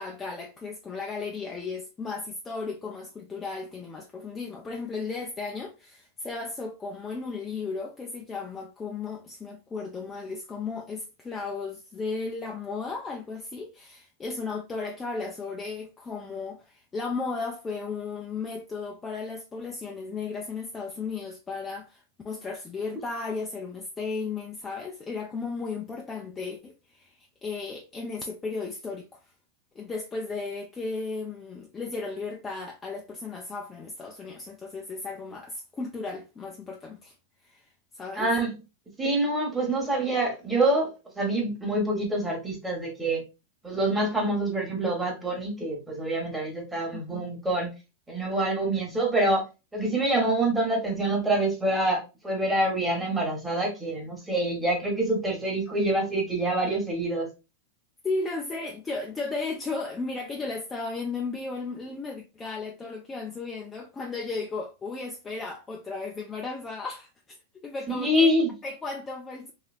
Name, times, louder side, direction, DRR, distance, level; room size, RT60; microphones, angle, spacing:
voice 1, 0.0-29.3 29.7-37.1 37.4-37.7 37.9-38.3 46.9-47.2 58.0-67.4 67.6-68.3 68.6-69.5, left 4 dB, 15° left, 0.4 m, -35 dB
voice 2, 38.1-38.5 39.0-43.2 43.6-47.7 48.1-49.5 49.7-57.3 67.9-68.5, right 1 dB, 5° right, 1.2 m, -26 dB
3.2 x 2.8 x 2.4 m
supercardioid pair, 150°, 0 cm